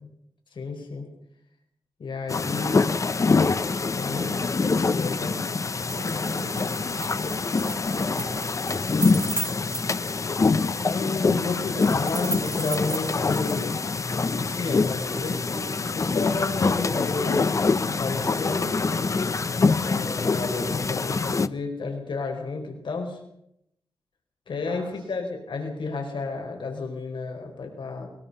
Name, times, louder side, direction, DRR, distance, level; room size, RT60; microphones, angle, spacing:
voice 1, 0.5-1.1 2.0-2.8 3.9-4.3 4.6-5.4 10.8-13.8 14.3-15.4 15.9-18.7 19.8-23.2 24.5-28.1, left 3 dB, 70° left, 3 dB, 4.8 m, -31 dB
sound 1, 2.3-21.5, left 4 dB, 40° left, 0.8 m, -25 dB
sound 2, 5.8-10.1 10.4-10.5 11.8-13.7, right 3 dB, 25° right, 2.0 m, -36 dB
voice 2, 5.9-9.5 24.7-25.1, right 2 dB, 60° right, -3 dB, 7.4 m, -44 dB
sound 3, 15.1-16.2 16.5-17.8 18.1-19.5 19.8-21.1 21.4-21.5, left 1 dB, 15° left, 8.0 m, -38 dB
22.0 x 22.0 x 5.6 m, 0.76 s
wide cardioid pair, 135°, 9 cm